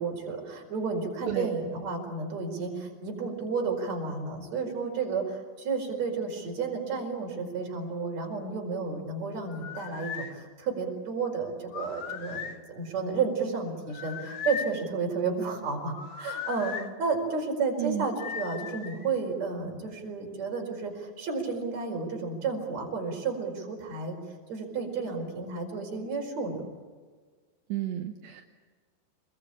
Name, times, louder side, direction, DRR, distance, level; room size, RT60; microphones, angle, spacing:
voice 1, 0.0-16.7 17.0-24.2 24.5-26.6, right 4 dB, 40° right, 1 dB, 5.7 m, -32 dB
sound 1, 9.5-10.3 11.7-12.6 13.9-14.8 15.9-16.9 18.2-19.1, left 7 dB, 60° left, 1.6 m, -37 dB
voice 2, 27.7-28.4, right 12 dB, 75° right, 3 dB, 3.2 m, -31 dB
27.0 x 22.0 x 8.7 m, 1.5 s
omnidirectional pair, 5.1 m